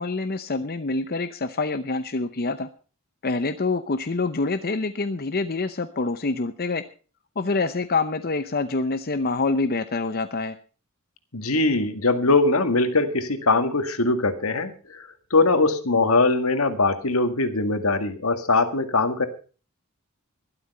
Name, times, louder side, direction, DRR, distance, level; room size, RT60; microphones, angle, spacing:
voice 1, 0.0-2.7 3.2-6.8 7.4-10.6, left 3 dB, 45° left, 9 dB, 0.8 m, -26 dB
voice 2, 11.3-19.3, left 3 dB, 75° left, 9 dB, 1.9 m, -21 dB
12.5 x 12.0 x 5.5 m, 0.38 s
head